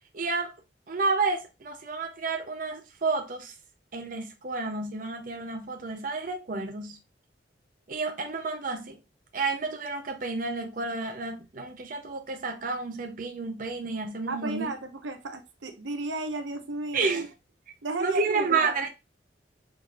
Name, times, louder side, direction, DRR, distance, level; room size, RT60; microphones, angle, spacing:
voice 1, 0.1-0.5 0.9-3.5 3.9-7.0 7.9-9.0 9.3-14.7 16.9-17.3 18.0-18.9, right 4 dB, 50° right, 0.6 m, -30 dB
voice 2, 14.3-17.3 17.8-18.9, right 3 dB, 80° right, 0.8 m, -34 dB
6.2 x 3.3 x 2.3 m
head